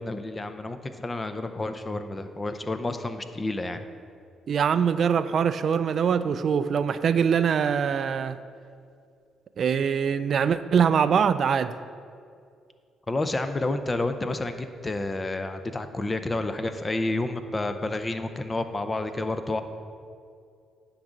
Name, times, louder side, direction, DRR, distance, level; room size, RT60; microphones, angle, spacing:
voice 1, 0.0-3.9 13.1-19.6, left 2 dB, 25° left, 9 dB, 0.6 m, -30 dB
voice 2, 4.5-8.4 9.6-11.7, right 7 dB, 55° right, 13 dB, 0.3 m, -23 dB
9.9 x 3.9 x 7.3 m, 2.3 s
cardioid pair, 90°, 0 cm